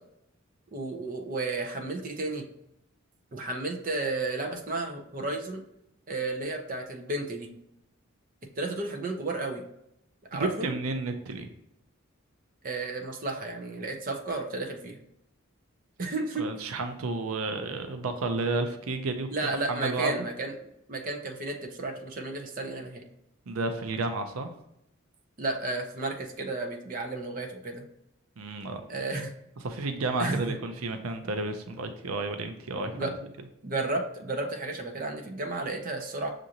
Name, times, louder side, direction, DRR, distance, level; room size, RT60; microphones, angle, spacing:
voice 1, 0.7-2.4 3.3-5.6 6.1-7.5 8.6-9.6 10.3-10.7 12.6-15.0 16.0-16.5 19.3-20.5 20.9-23.0 25.4-27.8 28.9-29.3 30.2-30.6 32.9-33.1 33.6-36.3, right 2 dB, 40° right, 3 dB, 0.6 m, -32 dB
voice 2, 10.3-11.5 16.4-20.2 23.5-24.5 28.4-28.8 29.6-33.1, right 3 dB, 80° right, 7 dB, 0.5 m, -31 dB
6.2 x 2.5 x 2.8 m, 0.81 s
head